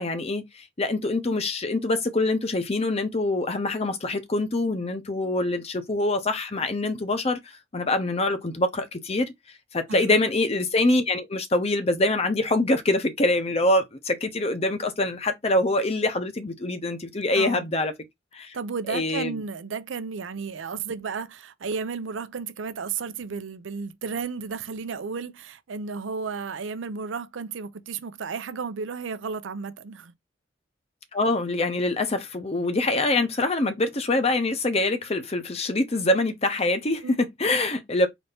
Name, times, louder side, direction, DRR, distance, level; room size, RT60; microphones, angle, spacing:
voice 1, 0.0-7.4 7.7-9.3 9.7-17.9 18.3-18.6 18.9-19.3 31.1-38.1, left 2 dB, 35° left, 0.8 m, -25 dB
voice 2, 17.3-17.7 18.5-30.1 37.0-37.2, right 5 dB, 90° right, 0.5 m, -33 dB
4.1 x 2.7 x 3.4 m
head